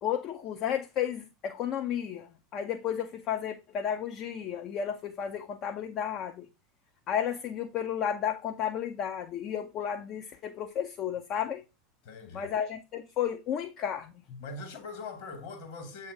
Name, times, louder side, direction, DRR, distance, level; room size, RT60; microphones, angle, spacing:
voice 1, 0.0-6.5 7.1-11.6 12.3-14.4, left 9 dB, 40° left, 0.6 m, -33 dB
voice 2, 12.0-12.5 14.4-16.1, left 3 dB, 55° left, 1.7 m, -42 dB
7.7 x 2.8 x 5.0 m
figure-of-eight pair, 80°, 0 cm